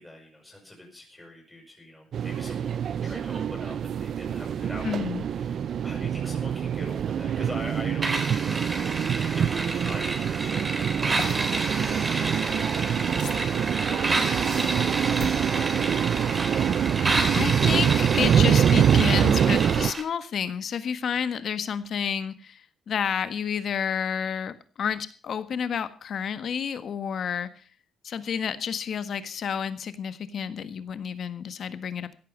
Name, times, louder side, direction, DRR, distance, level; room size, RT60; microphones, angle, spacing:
voice 1, 0.0-15.6, left 1 dB, 10° left, -1 dB, 6.6 m, -44 dB
sound 1, 2.1-19.9, right 8 dB, 60° right, 0.6 m, -25 dB
voice 2, 4.8-5.2 17.0-27.6 28.0-32.2, left 7 dB, 60° left, 12 dB, 1.6 m, -30 dB
sound 2, 8.0-20.0, right 2 dB, 25° right, 3.8 m, -30 dB
sound 3, 11.2-11.4 13.2-13.6 15.2-15.4 17.2-17.3, left 10 dB, 85° left, 1.8 m, -38 dB
16.5 x 11.0 x 5.4 m, 0.40 s
cardioid pair, 90°, 0 cm